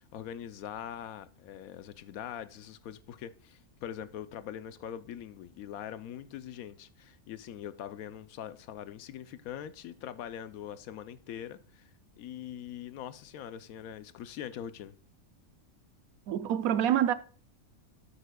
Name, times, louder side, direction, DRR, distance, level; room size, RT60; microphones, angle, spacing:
voice 1, 0.0-11.9 12.2-14.9, left 10 dB, 80° left, 1.1 m, -42 dB
voice 2, 16.3-17.1, right 10 dB, 85° right, 1.1 m, -26 dB
13.0 x 8.4 x 2.3 m
omnidirectional pair, 1.5 m